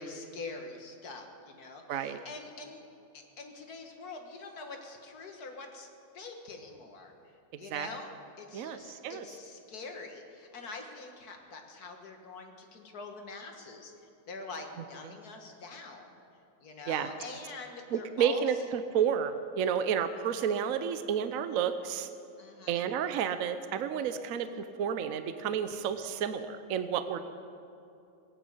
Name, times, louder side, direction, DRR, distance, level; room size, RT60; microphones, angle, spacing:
voice 1, 0.0-2.8 3.1-5.9 6.1-7.1 7.6-8.1 8.4-13.9 14.3-16.2 16.6-18.4 22.4-22.8 25.7-25.8, left 3 dB, 50° left, 3 dB, 1.8 m, -45 dB
voice 2, 1.9-2.2 7.7-7.9 8.5-9.2 15.0-15.1 16.9-17.1 17.9-22.1 22.7-27.4, right 8 dB, 70° right, 10 dB, 0.8 m, -31 dB
17.5 x 9.6 x 7.8 m, 2.7 s
omnidirectional pair, 2.2 m